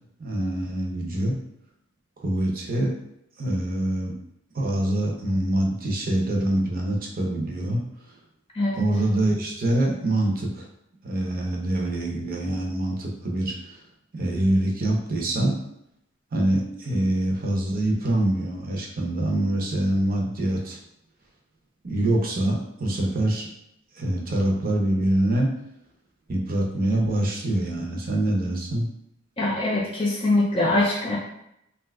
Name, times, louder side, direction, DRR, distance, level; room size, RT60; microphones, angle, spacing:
voice 1, 0.2-1.4 2.2-2.9 3.4-4.1 4.5-7.8 8.1-8.2 8.7-10.7 11.0-13.8 14.1-15.6 16.3-20.8 21.8-23.5 23.9-25.5 26.3-28.9, right 1 dB, 45° right, -1 dB, 0.7 m, -25 dB
voice 2, 29.4-31.2, left 2 dB, 25° left, -4 dB, 0.4 m, -23 dB
2.7 x 2.3 x 3.4 m, 0.79 s
head